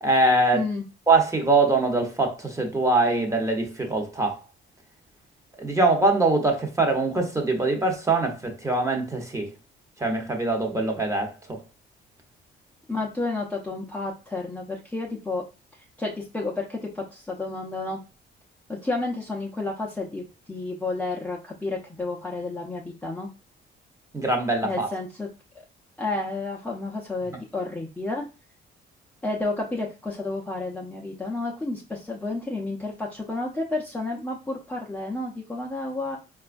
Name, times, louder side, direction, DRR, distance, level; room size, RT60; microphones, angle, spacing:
voice 1, 0.0-0.7 1.1-4.4 5.6-9.5 10.0-11.6 24.1-24.9, right 2 dB, 15° right, 0.9 m, -23 dB
voice 2, 0.5-0.8 12.9-15.4 16.0-18.0 18.7-23.3 24.6-25.3 26.0-28.3 29.2-36.2, left 2 dB, 5° left, 0.6 m, -31 dB
4.2 x 2.3 x 2.5 m
cardioid pair, 90°, 20 cm